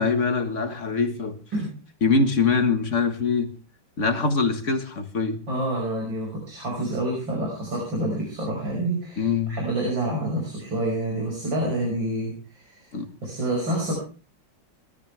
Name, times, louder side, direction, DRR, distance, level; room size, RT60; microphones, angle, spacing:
voice 1, 0.0-1.4 2.0-3.5 4.0-5.4 9.2-9.6 12.9-13.1, left 4 dB, 40° left, 7 dB, 1.9 m, -23 dB
voice 2, 5.5-12.9 13.2-13.9, right 1 dB, 80° right, -1 dB, 6.4 m, -28 dB
21.0 x 13.0 x 3.4 m, 0.35 s
omnidirectional pair, 2.0 m